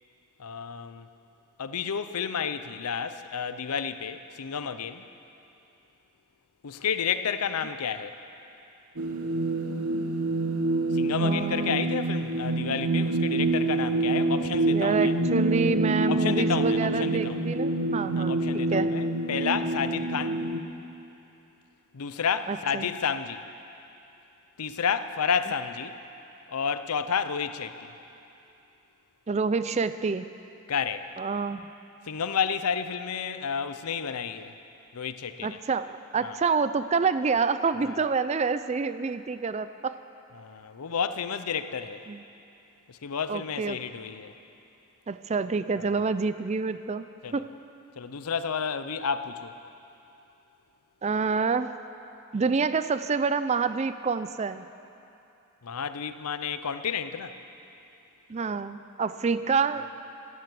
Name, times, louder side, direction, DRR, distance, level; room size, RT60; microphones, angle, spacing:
voice 1, 0.4-1.1 1.6-5.1 6.6-8.2 10.9-15.2 16.1-17.4 18.2-20.4 21.9-23.4 24.6-26.0 26.5-27.9 30.7-31.1 32.1-34.6 34.9-35.6 36.2-36.4 37.8-38.1 40.3-42.0 42.9-44.3 45.7-45.8 47.2-47.4 48.0-49.5 55.6-57.4, left 6 dB, 90° left, 11 dB, 0.6 m, -31 dB
sound 1, 9.0-20.6, right 2 dB, 80° right, 1.0 m, -26 dB
voice 2, 11.2-11.8 14.7-18.4 18.7-19.0 22.5-22.9 29.3-30.3 31.2-31.6 35.4-40.0 42.1-42.2 43.3-43.8 45.1-47.5 51.0-51.8 52.3-54.7 58.3-60.0, right 5 dB, 30° right, 13 dB, 0.4 m, -27 dB
13.5 x 11.0 x 7.6 m, 2.8 s
head